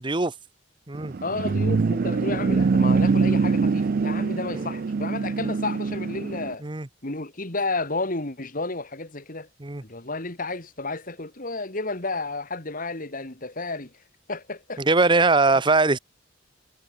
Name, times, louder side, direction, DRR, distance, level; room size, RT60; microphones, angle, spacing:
sound 1, 0.9-6.5, right 4 dB, 50° right, 0.4 m, -24 dB
voice 1, 1.2-6.6 7.0-9.5 9.8-13.9 14.3-14.8, left 3 dB, 45° left, 2.5 m, -32 dB
voice 2, 14.8-16.0, right 3 dB, 25° right, 1.0 m, -21 dB
head